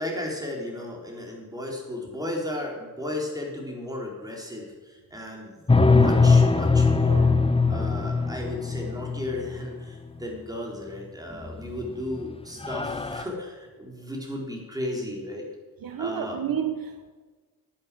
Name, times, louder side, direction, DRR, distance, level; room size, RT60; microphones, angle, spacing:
voice 1, 0.0-7.3 7.7-15.5 16.0-16.5, left 1 dB, 10° right, -1 dB, 4.2 m, -35 dB
sound 1, 5.7-9.6 11.4-11.9 12.2-12.3 12.6-13.2, left 4 dB, 15° left, 0.8 m, -21 dB
voice 2, 15.8-17.1, right 8 dB, 70° right, 7 dB, 1.2 m, -30 dB
10.5 x 10.0 x 7.6 m, 1.3 s
cardioid pair, 80°, 36 cm